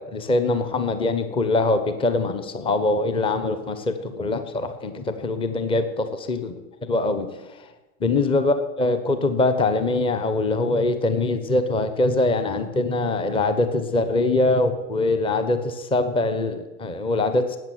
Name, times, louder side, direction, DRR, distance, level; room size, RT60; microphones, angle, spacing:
voice 1, 0.0-6.6 6.9-7.3 8.0-17.6, left 2 dB, 10° left, 9 dB, 1.1 m, -23 dB
13.5 x 8.8 x 9.2 m, 1.1 s
hypercardioid pair, 120°, 46 cm